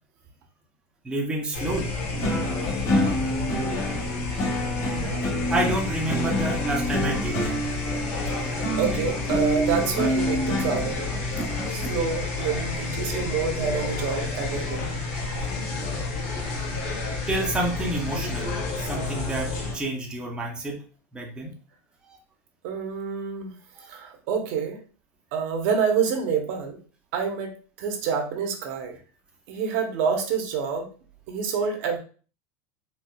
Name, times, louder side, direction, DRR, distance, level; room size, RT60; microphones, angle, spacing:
voice 1, 1.0-1.9 5.5-7.8 17.3-20.8 21.1-21.5 22.1-22.2 23.8-23.9, right 2 dB, 10° right, -1 dB, 0.6 m, -29 dB
sound 1, 1.5-19.8, left 3 dB, 80° left, 1.6 m, -30 dB
sound 2, 2.1-11.9, equal, 40° left, 1.0 m, -28 dB
voice 2, 4.9-5.3 8.3-11.1 11.7-14.9 22.6-23.5 23.9-24.8 25.3-26.8 27.1-29.0 29.5-30.9 31.3-32.0, right 6 dB, 65° right, 3 dB, 0.8 m, -28 dB
4.2 x 2.3 x 2.2 m, 0.38 s
supercardioid pair, 140°, 8 cm